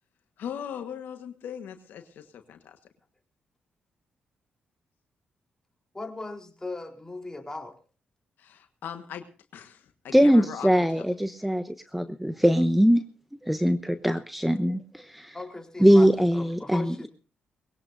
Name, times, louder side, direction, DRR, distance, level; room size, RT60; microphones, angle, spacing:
voice 1, 0.4-2.8 8.4-9.2 9.5-11.0, left 8 dB, 75° left, 8 dB, 1.5 m, -39 dB
voice 2, 5.9-7.8 15.3-17.1, left 2 dB, 15° left, 2 dB, 3.9 m, -38 dB
voice 3, 10.1-13.0 13.4-15.3 15.8-17.1, equal, 5° right, 9 dB, 1.0 m, -22 dB
21.0 x 16.5 x 2.7 m, 0.38 s
supercardioid pair, 55°, 3 cm